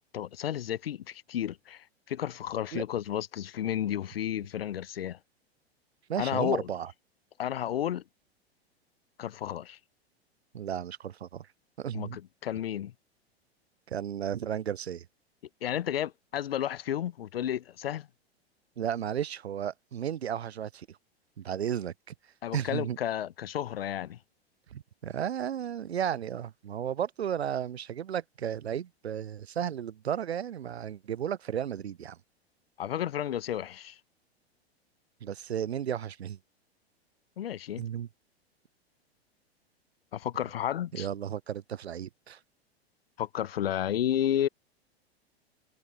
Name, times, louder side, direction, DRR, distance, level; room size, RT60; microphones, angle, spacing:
voice 1, 0.0-5.2 6.2-6.7 7.4-8.0 9.2-9.8 11.9-12.9 15.6-18.1 22.4-24.2 32.8-34.0 37.4-37.8 40.1-41.1 43.2-44.5, left 11 dB, 65° left, 0.9 m, -32 dB
voice 2, 6.1-6.9 10.5-11.5 11.8-12.2 13.9-15.1 18.8-21.0 21.4-22.1 22.5-23.0 24.7-32.2 35.2-36.4 37.8-38.1 40.9-42.4, right 9 dB, 80° right, 0.5 m, -34 dB
figure-of-eight pair, 95°, 32 cm